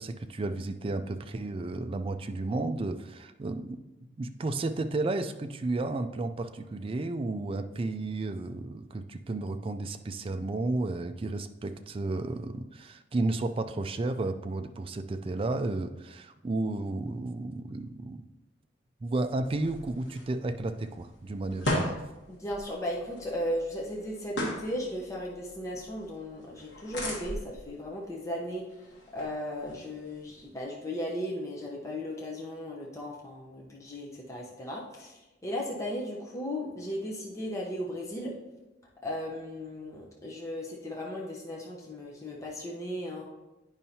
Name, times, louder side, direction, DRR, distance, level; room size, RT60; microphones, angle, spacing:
voice 1, 0.0-3.8 4.2-18.2 19.0-22.0, right 2 dB, 30° right, 8 dB, 0.4 m, -32 dB
sound 1, 19.2-30.6, left 1 dB, 70° left, 1.4 m, -39 dB
voice 2, 22.3-38.4 39.0-43.2, equal, 15° left, -3 dB, 0.8 m, -36 dB
9.0 x 5.5 x 2.8 m, 1.0 s
head